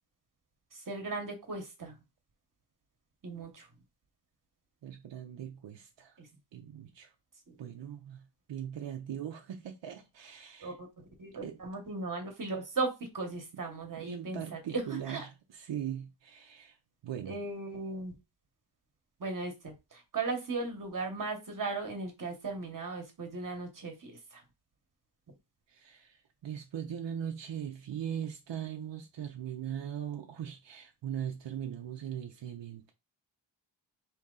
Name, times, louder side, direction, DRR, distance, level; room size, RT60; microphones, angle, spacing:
voice 1, 0.7-1.9 3.2-3.7 6.2-6.3 7.5-7.7 10.6-10.9 11.2-15.2 17.3-18.1 19.2-24.4, right 3 dB, 45° right, 1.0 m, -37 dB
voice 2, 4.8-6.2 6.5-7.1 7.6-10.7 11.4-11.6 14.0-16.8 17.0-17.4 25.7-32.9, right 9 dB, 85° right, 0.7 m, -40 dB
4.1 x 2.9 x 3.7 m
wide cardioid pair, 170°, 43 cm